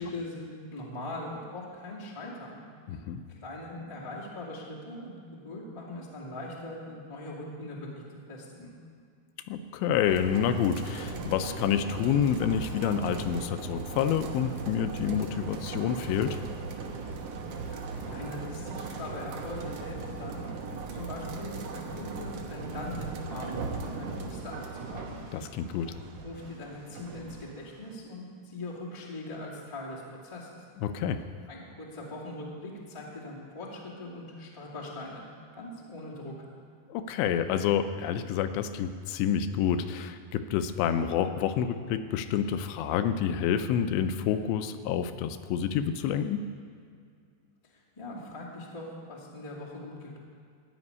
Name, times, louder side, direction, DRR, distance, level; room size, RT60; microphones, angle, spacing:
voice 1, 0.0-2.6 3.3-7.9 8.3-8.7 17.6-25.2 26.1-30.6 31.5-35.2 35.6-36.3 47.9-50.2, left 2 dB, 15° left, -6 dB, 1.0 m, -41 dB
voice 2, 2.9-3.2 9.5-16.4 25.3-26.0 30.8-31.2 36.9-46.4, left 8 dB, 85° left, 9 dB, 2.9 m, -28 dB
sound 1, 10.1-27.9, right 4 dB, 75° right, 1.8 m, -38 dB
15.5 x 5.3 x 9.6 m, 2.2 s
omnidirectional pair, 4.9 m